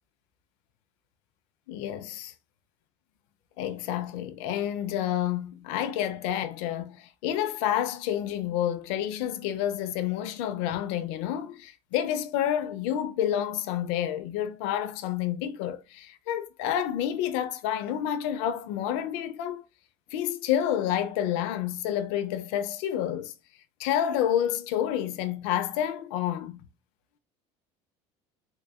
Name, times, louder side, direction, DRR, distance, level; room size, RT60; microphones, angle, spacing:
voice 1, 1.7-2.3 3.6-19.6 20.1-23.3 23.8-26.6, left 10 dB, 85° left, 0.6 m, -29 dB
3.9 x 3.5 x 2.2 m
supercardioid pair, 110°, 14 cm